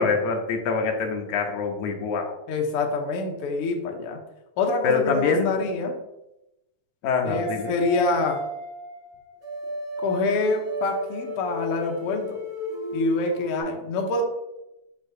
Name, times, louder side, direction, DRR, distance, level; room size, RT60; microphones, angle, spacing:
voice 1, 0.0-2.4 4.8-5.6 7.0-7.7, left 4 dB, 85° left, 3 dB, 2.2 m, -25 dB
voice 2, 2.5-4.2 4.6-6.0 7.2-8.4 10.0-12.4 12.9-14.2, left 3 dB, 65° left, 2 dB, 1.5 m, -26 dB
sound 1, 7.3-13.6, equal, 45° right, 1.2 m, -33 dB
6.4 x 5.7 x 2.7 m, 0.91 s
omnidirectional pair, 3.3 m